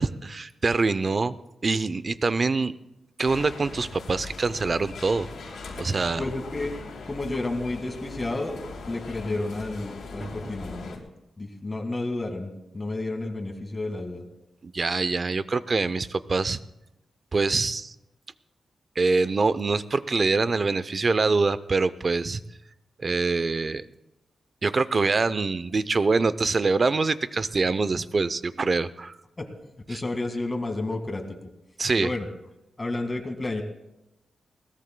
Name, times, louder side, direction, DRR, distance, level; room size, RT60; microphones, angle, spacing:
voice 1, 0.0-1.4 1.6-2.7 3.2-5.3 5.8-6.2 10.2-10.3 14.6-16.6 17.3-17.9 19.0-22.4 23.0-23.8 24.6-29.1 29.9-30.0 31.8-32.1, right 3 dB, 35° right, 15 dB, 0.5 m, -24 dB
sound 1, 3.2-11.0, left 3 dB, 90° left, 2.9 m, -40 dB
voice 2, 6.2-6.7 7.1-11.1 11.4-14.2 29.4-29.5 29.9-31.4 32.0-32.3 32.8-33.6, left 2 dB, 20° left, 5 dB, 1.8 m, -31 dB
21.5 x 18.0 x 2.2 m, 0.91 s
wide cardioid pair, 125°, 0 cm